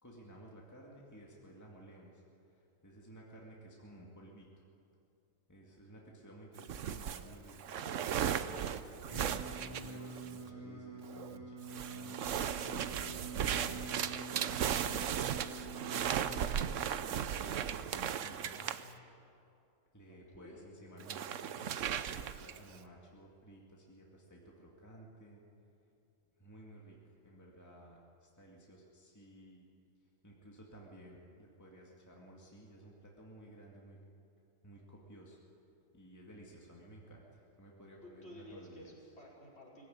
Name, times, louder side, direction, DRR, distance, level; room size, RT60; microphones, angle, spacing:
voice 1, 0.0-2.2 2.6-4.7 5.5-8.8 9.0-12.4 12.7-16.1 16.8-18.9 19.9-25.4 26.4-29.7 30.2-34.0 34.6-35.4 35.9-38.9, right 1 dB, 15° left, -2 dB, 2.2 m, -55 dB
sound 1, 6.6-10.5 11.0-11.4 11.7-18.9 21.0-22.7, right 9 dB, 75° right, 1.1 m, -36 dB
Singing, 9.1-16.3, right 4 dB, 25° right, 3.3 m, -46 dB
voice 2, 20.1-20.7 38.0-39.8, left 1 dB, 55° left, -4 dB, 5.3 m, -53 dB
21.0 x 16.0 x 9.5 m, 2.6 s
omnidirectional pair, 1.3 m